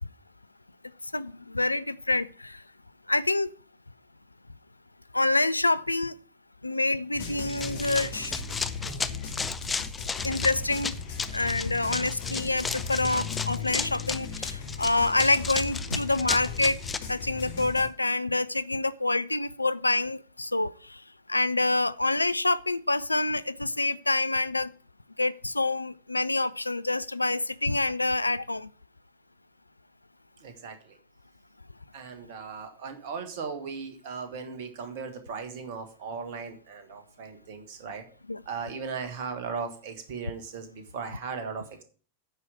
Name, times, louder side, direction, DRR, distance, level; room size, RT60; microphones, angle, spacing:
voice 1, 1.1-2.6 3.1-3.5 5.1-6.1 6.6-8.4 10.2-10.9 11.3-16.8 17.1-21.0 21.3-24.7 25.2-28.7 38.3-38.4, left 2 dB, 85° left, 0.4 m, -27 dB
sound 1, 7.1-17.9, left 5 dB, 55° left, 2.3 m, -37 dB
Run, 7.5-17.0, left 4 dB, 15° left, 0.6 m, -34 dB
voice 2, 30.4-31.0 31.9-38.0 38.4-41.6, right 5 dB, 50° right, 1.6 m, -37 dB
9.5 x 4.8 x 7.4 m
figure-of-eight pair, 90°, 0 cm